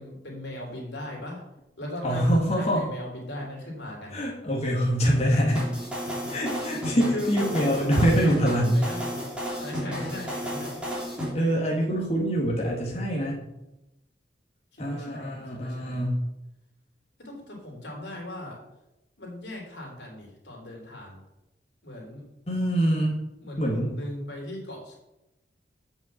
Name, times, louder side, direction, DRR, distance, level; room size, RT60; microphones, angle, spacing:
voice 1, 0.0-1.4 1.8-4.2 6.7-6.8 7.1-9.2 9.6-10.9 14.7-16.1 17.2-18.6 19.2-21.2 21.8-22.2 23.4-25.0, left 1 dB, 80° left, -1 dB, 3.5 m, -38 dB
voice 2, 2.0-2.9 4.1-5.7 6.3-8.8 11.3-13.5 14.8-16.3 22.5-23.2 23.6-23.9, equal, 35° left, -3 dB, 1.8 m, -24 dB
sound 1, 5.5-11.3, equal, 5° right, 2.8 m, -32 dB
8.0 x 5.8 x 7.1 m, 0.92 s
head